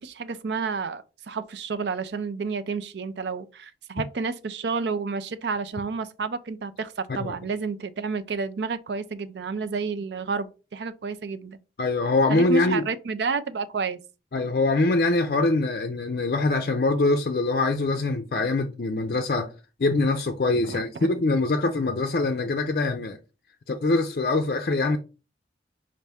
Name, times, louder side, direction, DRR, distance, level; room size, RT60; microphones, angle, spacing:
voice 1, 0.0-11.6 12.3-14.0 20.6-20.8, right 4 dB, 80° right, 0.5 m, -30 dB
voice 2, 11.8-12.9 14.3-19.5 19.8-23.2 23.7-25.0, left 2 dB, 55° left, 0.4 m, -23 dB
5.3 x 2.6 x 3.4 m
head